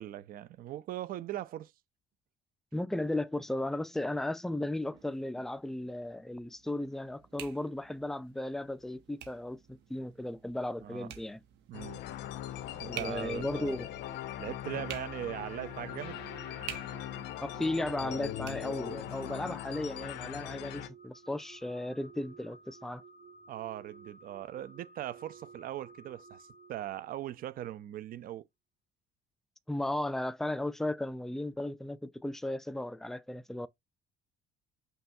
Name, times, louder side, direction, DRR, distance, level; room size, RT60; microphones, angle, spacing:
voice 1, 0.0-1.7 10.8-11.1 11.7-12.0 12.8-13.8 14.4-16.2 23.5-28.4, right 13 dB, 60° right, 0.5 m, -40 dB
voice 2, 2.7-11.4 12.7-13.9 14.7-14.8 17.4-23.0 29.7-33.7, left 1 dB, ahead, 0.3 m, -35 dB
sound 1, 4.9-20.1, right 10 dB, 90° right, 1.0 m, -51 dB
sound 2, 11.7-20.9, left 12 dB, 85° left, 0.6 m, -40 dB
sound 3, 15.4-27.3, right 5 dB, 35° right, 1.9 m, -54 dB
5.5 x 2.3 x 2.7 m
cardioid pair, 110°, 17 cm